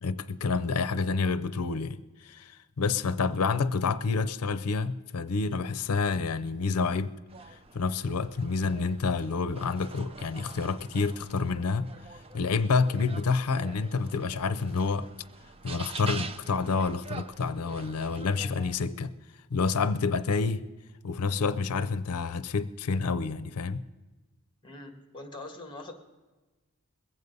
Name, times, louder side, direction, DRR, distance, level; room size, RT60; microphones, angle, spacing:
voice 1, 0.0-7.1 7.7-11.9 12.3-15.1 15.6-19.1 19.5-20.6 21.0-23.8, left 4 dB, 85° left, 0.5 m, -28 dB
sound 1, 7.3-18.9, right 4 dB, 25° right, 0.5 m, -45 dB
voice 2, 24.6-25.9, left 2 dB, 20° left, 1.6 m, -43 dB
21.5 x 8.1 x 5.3 m
head